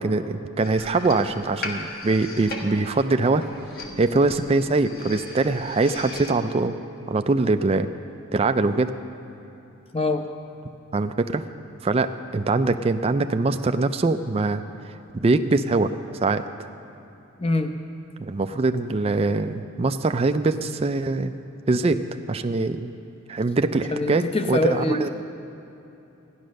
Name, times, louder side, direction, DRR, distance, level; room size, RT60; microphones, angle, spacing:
voice 1, 0.0-3.5 4.0-6.8 7.1-7.9 8.3-8.9 10.9-11.4 11.8-15.9 16.2-16.4 18.2-21.3 21.7-22.0 22.3-22.9 23.3-25.1, right 3 dB, 30° right, 8 dB, 0.4 m, -23 dB
sound 1, 0.6-6.3, left 2 dB, 45° left, 1.4 m, -38 dB
voice 2, 9.9-10.3 17.4-17.7 23.9-25.1, left 2 dB, 25° left, 6 dB, 0.7 m, -24 dB
14.0 x 10.5 x 6.4 m, 2.9 s
head